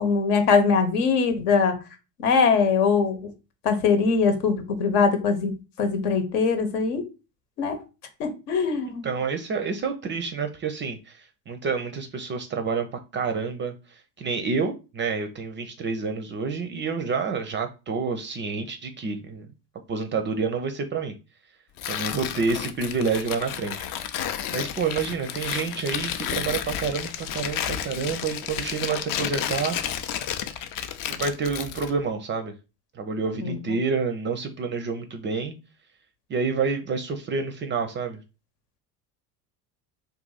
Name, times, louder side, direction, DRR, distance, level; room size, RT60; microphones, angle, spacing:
voice 1, 0.0-1.8 2.2-3.3 3.6-7.0 7.6-7.8 8.2-9.1 33.4-33.6, left 5 dB, 70° left, 1.1 m, -22 dB
voice 2, 9.0-12.9 13.1-19.5 19.9-21.1 21.9-23.9 24.2-29.8 31.1-32.5 32.9-35.6 36.3-38.2, right 5 dB, 25° right, 0.4 m, -28 dB
Tearing, 21.8-32.0, left 10 dB, 45° left, 0.5 m, -31 dB
2.7 x 2.5 x 3.9 m
hypercardioid pair, 75°, 48 cm